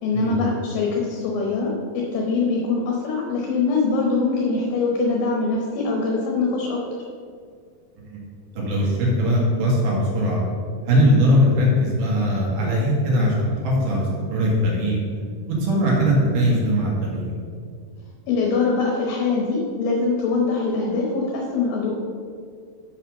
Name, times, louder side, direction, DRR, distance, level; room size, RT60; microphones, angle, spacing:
voice 1, 0.0-6.8 18.3-21.9, left 4 dB, 75° left, -2 dB, 2.7 m, -23 dB
voice 2, 8.5-10.4 10.9-15.0 15.5-17.3, equal, 60° right, -4 dB, 3.3 m, -20 dB
6.8 x 5.6 x 6.3 m, 2.1 s
omnidirectional pair, 4.5 m